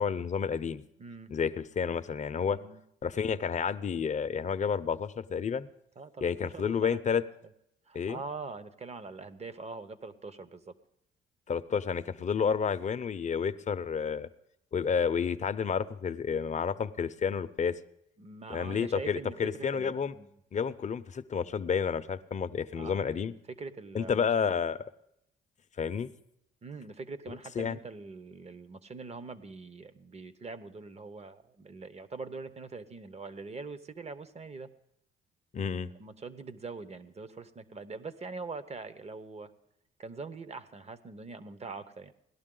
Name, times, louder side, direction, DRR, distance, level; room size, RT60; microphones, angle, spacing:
voice 1, 0.0-0.8 1.3-2.6 3.0-5.7 6.2-7.2 7.9-8.2 11.5-14.3 14.7-17.8 18.5-20.1 20.5-23.3 23.9-24.8 25.8-26.1 27.3-27.8 35.5-35.9, left 6 dB, 35° left, 11 dB, 0.6 m, -30 dB
voice 2, 1.0-1.3 2.4-2.8 6.0-7.2 7.9-10.7 12.3-12.4 18.2-20.3 22.7-23.2 23.5-24.5 26.6-34.7 36.0-39.5 40.0-42.1, right 4 dB, 30° right, 13 dB, 0.9 m, -43 dB
17.5 x 11.5 x 3.8 m, 0.78 s
cardioid pair, 90°, 20 cm